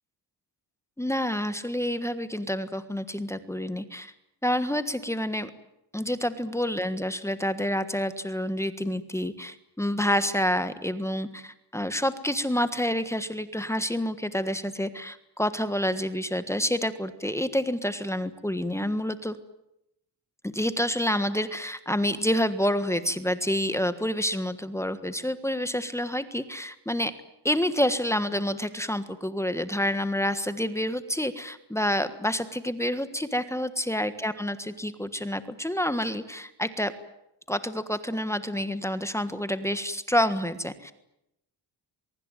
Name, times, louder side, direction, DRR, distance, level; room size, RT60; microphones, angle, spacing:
voice 1, 1.0-4.1 4.4-5.5 5.9-19.4 20.4-27.1 27.4-36.9 37.5-40.9, equal, 5° left, 11 dB, 1.5 m, -28 dB
23.5 x 23.0 x 9.1 m, 0.82 s
wide cardioid pair, 140°, 43 cm